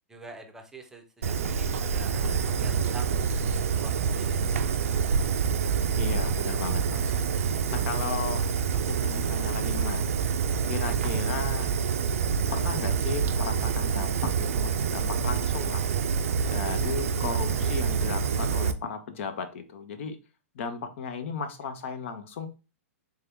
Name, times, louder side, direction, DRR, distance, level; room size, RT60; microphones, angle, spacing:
voice 1, 0.1-3.2 3.8-4.4 10.8-10.9 16.6-16.8, right 2 dB, 5° right, 0.6 m, -46 dB
Fire, 1.2-18.7, right 6 dB, 80° right, 0.4 m, -27 dB
voice 2, 6.0-8.5 8.7-10.1 10.7-11.7 12.5-15.9 16.5-20.2 20.5-22.5, left 5 dB, 60° left, 0.7 m, -35 dB
3.4 x 2.7 x 3.5 m
hypercardioid pair, 140°, 8 cm